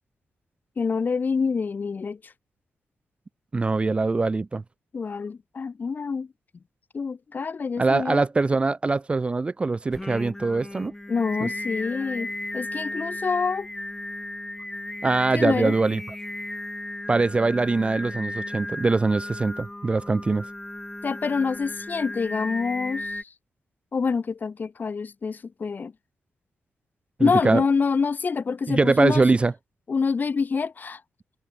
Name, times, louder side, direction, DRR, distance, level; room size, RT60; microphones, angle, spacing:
voice 1, 0.8-2.3 4.9-6.3 6.9-8.2 11.1-13.7 15.3-15.7 21.0-23.3 23.9-25.9 27.2-29.2 29.9-31.0, left 5 dB, 45° left, 1.2 m, -26 dB
voice 2, 3.5-4.6 7.8-10.9 11.4-11.5 15.0-16.0 17.1-20.4 27.2-27.6 28.7-29.5, right 3 dB, 25° right, 0.4 m, -22 dB
Singing, 9.9-23.2, left 1 dB, 10° left, 0.7 m, -35 dB
cardioid pair, 95°, 4 cm